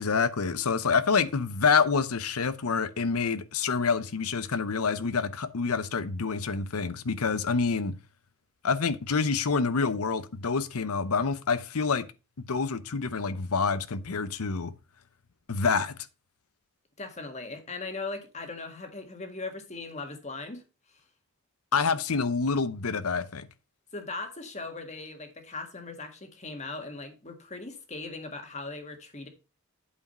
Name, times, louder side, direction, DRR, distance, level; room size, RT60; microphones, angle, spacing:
voice 1, 0.0-8.0 8.6-12.0 12.5-14.7 15.5-15.9 21.7-23.5, left 5 dB, 90° left, 0.8 m, -27 dB
voice 2, 17.0-20.6 20.9-21.0 23.9-29.3, left 3 dB, 30° left, 1.6 m, -39 dB
8.6 x 4.9 x 5.4 m
head